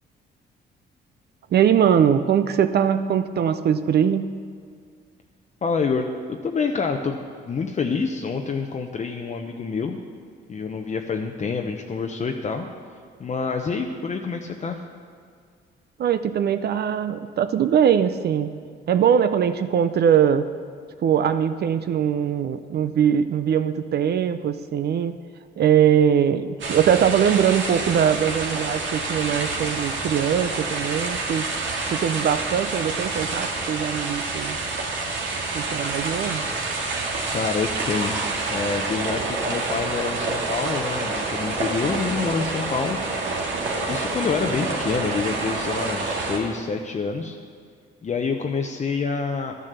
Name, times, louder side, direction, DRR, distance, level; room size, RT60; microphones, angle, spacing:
voice 1, 1.5-4.3 16.0-18.5 18.9-20.5 21.0-25.2 25.6-31.5 31.9-34.6 35.5-36.4, right 8 dB, 55° right, 11 dB, 0.5 m, -21 dB
voice 2, 5.6-10.0 10.5-12.6 13.2-14.8 37.3-38.2 38.5-43.0 43.9-47.4 48.0-49.6, left 5 dB, 35° left, 3 dB, 0.7 m, -27 dB
sound 1, 26.6-46.4, right 3 dB, 70° right, 1.9 m, -28 dB
12.0 x 7.4 x 6.7 m, 2.1 s
cardioid pair, 90°, 20 cm